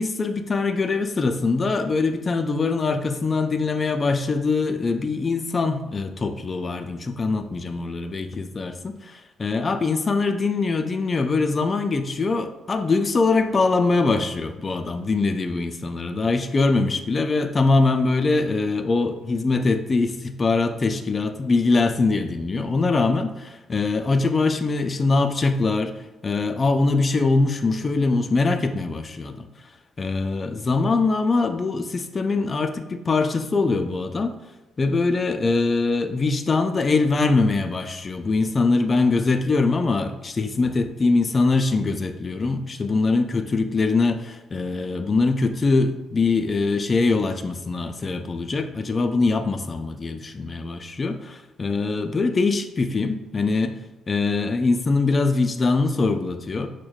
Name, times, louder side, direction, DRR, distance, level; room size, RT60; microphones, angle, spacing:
voice 1, 0.0-29.5 30.0-34.4 34.8-53.8 54.1-56.7, left 3 dB, 35° left, 7 dB, 0.3 m, -23 dB
6.0 x 2.1 x 2.3 m, 1.1 s
cardioid pair, 90°, 0 cm